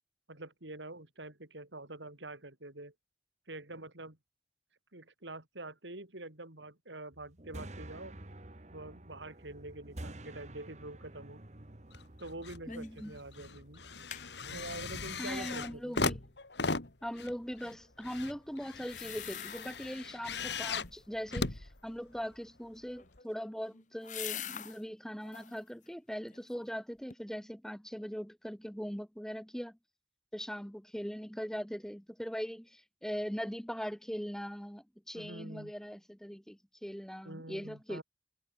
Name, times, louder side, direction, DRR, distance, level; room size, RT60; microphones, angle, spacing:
voice 1, 0.3-2.9 3.5-4.2 4.9-8.2 8.7-11.4 12.2-13.8 14.5-16.0 35.1-35.7 37.2-38.0, right 2 dB, 85° right, 4.6 m, -46 dB
sound 1, 7.1-15.8, right 1 dB, 40° right, 1.7 m, -50 dB
sound 2, 11.9-12.6 13.0-22.4 23.1-23.2, left 4 dB, 75° left, 2.5 m, -38 dB
sound 3, 12.7-13.0 13.3-13.4 13.8-14.3 18.8-20.0 20.4-20.9 22.9-24.8 25.2-25.6 26.1-26.8 27.1-27.2, left 10 dB, 45° left, 1.7 m, -45 dB
voice 2, 12.7-13.1 15.2-16.2 17.0-29.8 30.3-38.0, equal, 5° left, 1.6 m, -40 dB
head